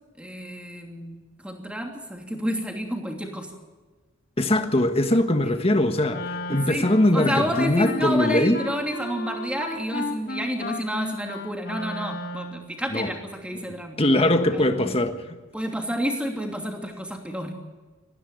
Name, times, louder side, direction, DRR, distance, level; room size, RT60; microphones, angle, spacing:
voice 1, 0.2-1.2 1.4-3.5 6.5-14.9 15.5-17.5, equal, 5° right, 2 dB, 2.9 m, -30 dB
voice 2, 4.4-8.6 12.9-13.1 14.0-15.4, left 1 dB, 30° left, 7 dB, 1.5 m, -21 dB
Wind instrument woodwind instrument, 6.1-12.7, left 2 dB, 50° left, 2.0 m, -34 dB
20.5 x 15.0 x 9.5 m, 1.3 s
head